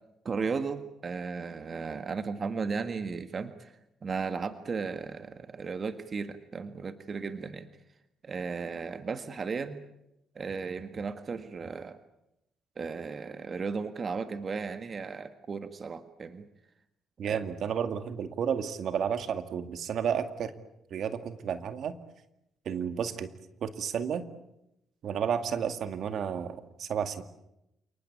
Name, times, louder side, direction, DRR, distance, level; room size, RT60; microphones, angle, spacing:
voice 1, 0.3-3.7 4.0-7.7 8.2-9.8 10.4-12.0 12.8-16.5 17.3-17.4, right 5 dB, 40° right, 9 dB, 1.7 m, -35 dB
voice 2, 17.2-20.5 20.9-21.9 22.7-23.3 23.6-24.3 25.0-27.2, right 7 dB, 65° right, 9 dB, 2.0 m, -32 dB
29.5 x 19.5 x 8.5 m, 0.85 s
cardioid pair, 90°, 0 cm